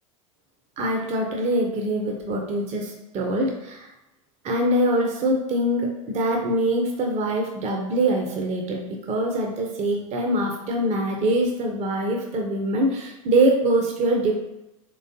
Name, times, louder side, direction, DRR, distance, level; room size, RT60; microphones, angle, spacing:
voice 1, 0.8-3.9 4.4-14.3, right 1 dB, 40° right, 1 dB, 0.7 m, -24 dB
3.8 x 3.1 x 2.7 m, 0.94 s
hypercardioid pair, 85°, 17 cm